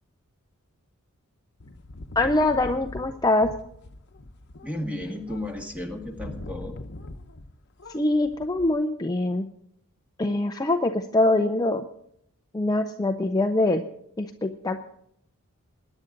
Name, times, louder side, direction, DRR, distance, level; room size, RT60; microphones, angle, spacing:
sound 1, 1.6-7.5 7.8-8.7, left 2 dB, 50° left, 1.0 m, -42 dB
voice 1, 2.2-3.5 7.9-9.5 10.2-11.8 12.5-13.8 14.2-14.8, left 2 dB, 15° left, 5 dB, 0.6 m, -23 dB
voice 2, 4.6-6.8, left 1 dB, 5° right, 3 dB, 2.0 m, -33 dB
21.0 x 9.9 x 3.9 m, 0.74 s
head